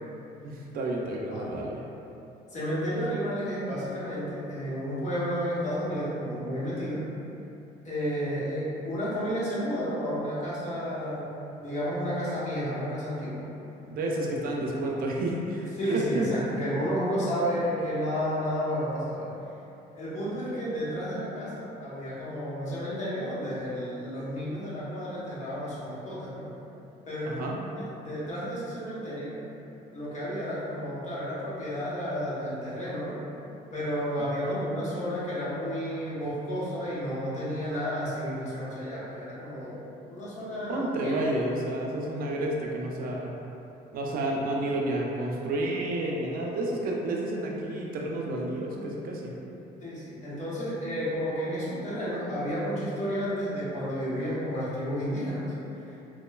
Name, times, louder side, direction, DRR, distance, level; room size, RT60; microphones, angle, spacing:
voice 1, 0.4-1.8 13.8-16.3 27.3-27.6 34.2-34.6 40.6-43.3 43.9-49.3, right 1 dB, 60° right, -2 dB, 0.4 m, -30 dB
voice 2, 2.5-7.0 7.8-11.3 11.6-13.4 15.8-19.3 19.9-26.5 27.1-27.5 27.7-29.4 29.9-33.2 33.7-41.2 49.8-55.4 55.8-56.0, equal, 45° left, -9 dB, 0.9 m, -31 dB
2.9 x 2.1 x 2.3 m, 2.9 s
cardioid pair, 110°, 17 cm